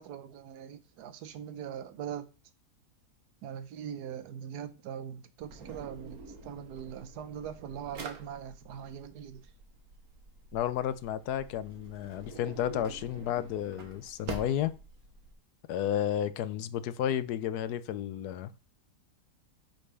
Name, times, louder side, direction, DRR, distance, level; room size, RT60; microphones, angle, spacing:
voice 1, 0.0-2.3 3.4-9.4, right 9 dB, 85° right, 1.3 m, -41 dB
Drawer open or close, 5.4-15.3, right 3 dB, 65° right, 1.5 m, -47 dB
voice 2, 10.5-14.7 15.7-18.5, left 10 dB, 80° left, 1.1 m, -32 dB
10.0 x 4.0 x 3.3 m
omnidirectional pair, 1.7 m